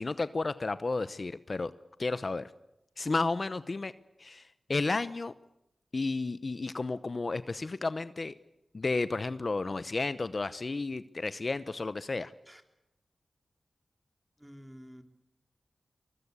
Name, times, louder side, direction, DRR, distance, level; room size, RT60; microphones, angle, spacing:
voice 1, 0.0-1.7 2.0-2.5 3.0-3.9 4.2-5.3 5.9-8.3 8.7-12.3, left 3 dB, 55° left, 14 dB, 0.8 m, -32 dB
voice 2, 14.4-15.0, equal, 10° right, 6 dB, 3.6 m, -49 dB
23.5 x 21.0 x 8.3 m, 0.88 s
cardioid pair, 45°, 0 cm